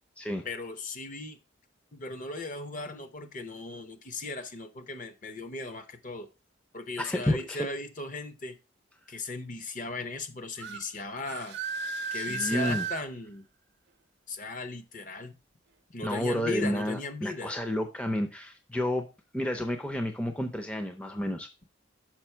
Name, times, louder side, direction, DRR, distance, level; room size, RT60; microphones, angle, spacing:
voice 1, 0.4-1.4 1.9-6.3 6.7-8.6 9.1-11.6 12.1-13.4 14.3-15.3 15.9-17.5, left 3 dB, 40° left, 0.7 m, -37 dB
voice 2, 7.0-7.7 12.1-12.9 16.0-21.5, left 1 dB, 5° left, 0.5 m, -31 dB
sound 1, 10.6-10.8 11.3-13.0, right 4 dB, 55° right, 0.6 m, -34 dB
6.0 x 5.1 x 4.4 m
head